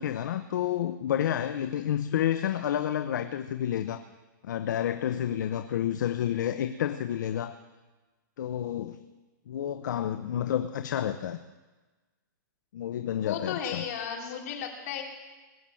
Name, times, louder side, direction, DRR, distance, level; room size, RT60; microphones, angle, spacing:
voice 1, 0.0-4.0 4.4-7.5 8.4-9.0 9.5-11.4 12.7-13.8, left 10 dB, 65° left, 10 dB, 0.8 m, -30 dB
voice 2, 13.2-15.0, left 8 dB, 50° left, 1 dB, 2.9 m, -34 dB
20.5 x 8.5 x 7.6 m, 1.2 s
hypercardioid pair, 165°, 11 cm